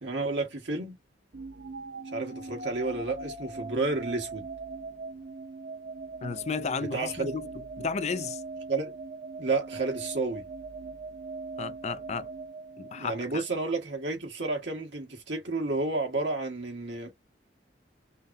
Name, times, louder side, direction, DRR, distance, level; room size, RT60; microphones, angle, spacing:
voice 1, 0.0-1.0 2.1-4.5 6.9-7.4 8.7-8.9 9.4-10.4 12.9-17.1, right 3 dB, 80° right, 1.7 m, -31 dB
sound 1, 1.3-13.4, right 3 dB, 60° right, 1.1 m, -41 dB
voice 2, 6.2-7.5 7.8-8.4 11.6-12.3 12.8-13.4, left 5 dB, 40° left, 0.4 m, -33 dB
5.5 x 2.1 x 2.7 m
head